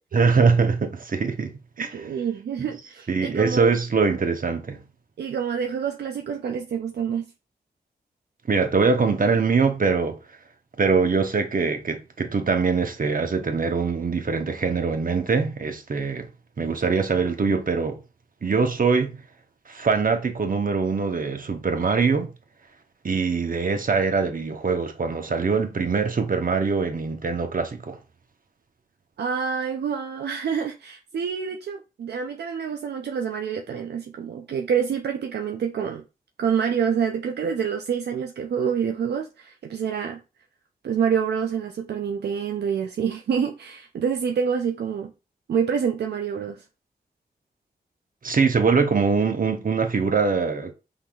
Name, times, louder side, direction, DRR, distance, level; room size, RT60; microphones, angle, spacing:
voice 1, 0.1-2.1 2.6-2.7 3.1-4.8 8.5-10.2 10.8-16.3 16.6-18.0 18.4-19.2 19.7-22.3 23.0-28.0 48.2-50.7, right 5 dB, 55° right, 1.0 m, -23 dB
voice 2, 1.8-3.7 5.2-7.3 29.2-36.0 36.4-40.2 40.8-45.1 45.5-46.6, right 7 dB, 80° right, 0.4 m, -27 dB
5.2 x 3.9 x 2.3 m
cardioid pair, 40°, 17 cm